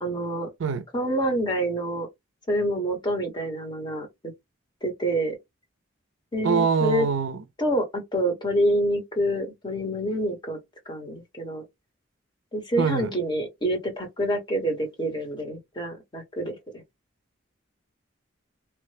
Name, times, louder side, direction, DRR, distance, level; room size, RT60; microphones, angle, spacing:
voice 1, 0.0-0.5 0.9-2.1 2.5-4.1 4.8-5.4 6.3-7.1 7.6-10.6 10.9-11.6 12.5-16.8, right 1 dB, 20° left, 0.9 m, -27 dB
voice 2, 6.4-7.4 12.8-13.1, right 6 dB, 65° right, 0.4 m, -23 dB
3.1 x 2.1 x 3.2 m
head